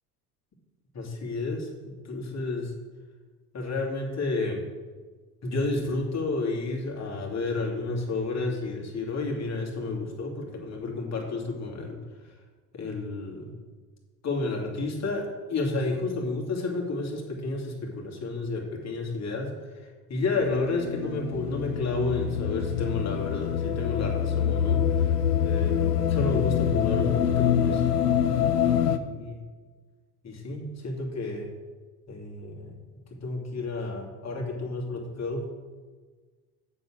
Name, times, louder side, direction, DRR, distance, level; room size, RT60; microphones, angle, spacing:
voice 1, 0.9-2.7 3.5-4.6 5.4-12.0 12.7-13.5 14.2-19.5 19.8-25.1 25.4-27.9 28.6-29.4 30.2-31.5 32.1-32.7 33.2-35.5, left 3 dB, 35° left, 0 dB, 2.9 m, -31 dB
sound 1, 20.3-29.0, left 9 dB, 90° left, 0.7 m, -25 dB
8.0 x 7.0 x 6.3 m, 1.4 s
hypercardioid pair, 75°, 46 cm